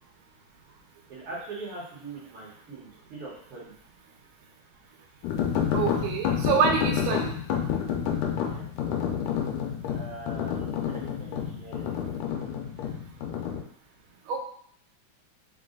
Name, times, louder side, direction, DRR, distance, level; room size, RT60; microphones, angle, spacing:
voice 1, 1.1-3.7 8.4-8.7 9.9-11.9, right 2 dB, 55° right, -6 dB, 1.8 m, -42 dB
sound 1, 5.2-13.6, left 8 dB, 90° left, 2.2 m, -29 dB
voice 2, 5.7-7.3 14.3-14.4, right 6 dB, 85° right, 2 dB, 2.2 m, -26 dB
5.2 x 2.4 x 3.7 m, 0.63 s
omnidirectional pair, 3.6 m